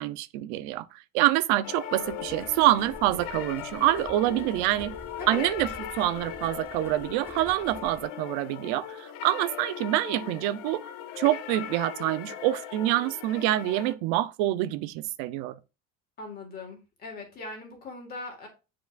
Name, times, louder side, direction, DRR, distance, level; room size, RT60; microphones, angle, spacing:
voice 1, 0.0-4.9 5.3-5.7 5.9-10.8 11.2-15.6, right 15 dB, 80° right, 0.6 m, -26 dB
sound 1, 1.6-13.9, left 9 dB, 85° left, 0.9 m, -39 dB
Run, 2.0-8.0, right 2 dB, 5° right, 0.5 m, -48 dB
voice 2, 5.2-5.5 16.2-18.5, left 3 dB, 30° left, 1.7 m, -40 dB
8.0 x 4.9 x 2.5 m
cardioid pair, 175°, 34 cm